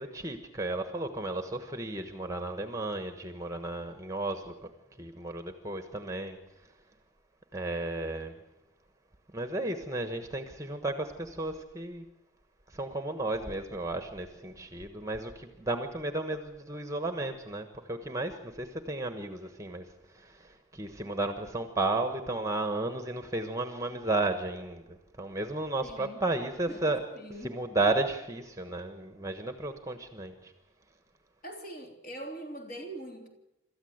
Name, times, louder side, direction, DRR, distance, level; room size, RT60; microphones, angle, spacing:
voice 1, 0.0-4.5 5.0-6.4 7.5-8.3 9.3-12.0 12.7-19.8 20.1-27.0 27.4-30.5, right 2 dB, 15° right, 8 dB, 1.2 m, -33 dB
voice 2, 25.8-26.2 26.7-27.6 31.4-33.3, right 1 dB, 40° left, 2 dB, 3.3 m, -43 dB
26.5 x 13.5 x 8.0 m, 0.93 s
head